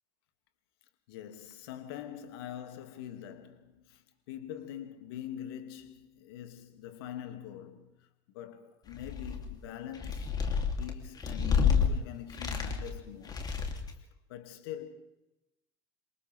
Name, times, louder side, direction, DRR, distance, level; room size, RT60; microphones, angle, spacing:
voice 1, 1.1-8.0 8.3-10.3 10.8-13.4 14.3-14.9, left 10 dB, 65° left, 2.5 m, -43 dB
sound 1, 8.9-9.5 9.9-11.9 12.3-13.0 13.3-13.9, left 6 dB, 30° left, 3.2 m, -29 dB
29.0 x 26.5 x 3.6 m
figure-of-eight pair, 65°, 13 cm